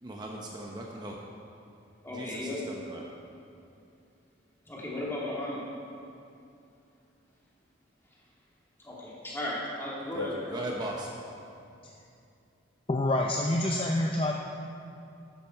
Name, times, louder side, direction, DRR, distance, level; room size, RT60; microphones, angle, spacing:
voice 1, 0.0-1.2 2.1-3.0 10.1-11.1, right 1 dB, 20° right, -1 dB, 0.9 m, -38 dB
voice 2, 2.0-2.6 4.7-5.6 8.8-10.7, left 1 dB, 10° left, -6 dB, 2.4 m, -35 dB
voice 3, 12.9-14.3, left 1 dB, 30° left, 0 dB, 0.5 m, -27 dB
11.5 x 11.0 x 4.6 m, 2.6 s
head